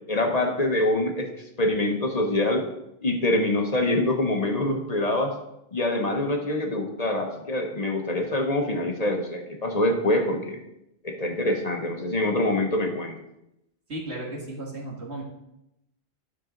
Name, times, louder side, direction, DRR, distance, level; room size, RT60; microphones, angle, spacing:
voice 1, 0.1-1.3 1.6-2.7 3.0-5.4 5.7-10.6 11.0-13.2, left 1 dB, 40° left, 3 dB, 1.1 m, -25 dB
voice 2, 13.9-15.2, right 1 dB, 85° right, -2 dB, 2.3 m, -34 dB
10.5 x 6.2 x 3.8 m, 0.83 s
omnidirectional pair, 1.1 m